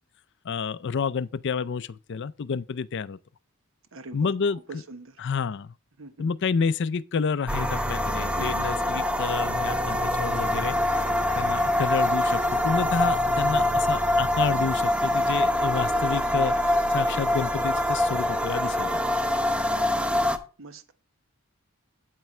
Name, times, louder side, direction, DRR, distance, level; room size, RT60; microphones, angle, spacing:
voice 1, 0.4-3.2 4.1-4.8 5.2-5.7 6.2-11.0 11.3-16.5 16.9-18.9, left 5 dB, 50° left, 0.4 m, -29 dB
voice 2, 3.9-4.3 4.7-5.2 6.0-6.3 8.4-8.7 17.1-17.3 20.0-20.3 20.6-20.9, right 2 dB, 60° right, 1.2 m, -43 dB
sound 1, 7.5-20.4, left 1 dB, 5° right, 0.7 m, -24 dB
9.1 x 8.4 x 3.2 m
head